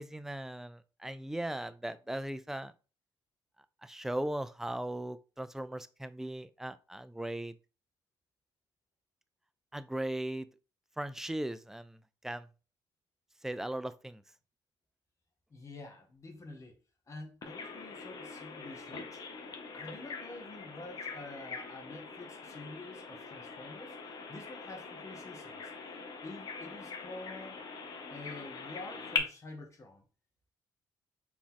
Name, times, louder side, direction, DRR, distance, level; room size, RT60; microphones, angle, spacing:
voice 1, 0.0-2.7 3.8-7.5 9.7-10.5 11.0-12.0 12.2-12.5 13.4-14.2, right 1 dB, 5° right, 0.3 m, -38 dB
voice 2, 15.5-16.8 17.1-19.2 19.7-24.0 24.3-25.7 26.2-27.6 28.1-30.0, left 2 dB, 40° left, 1.2 m, -48 dB
Bird vocalization bird call bird song, 17.4-29.2, left 5 dB, 55° left, 0.9 m, -42 dB
4.1 x 3.0 x 3.6 m
cardioid pair, 85°, 8 cm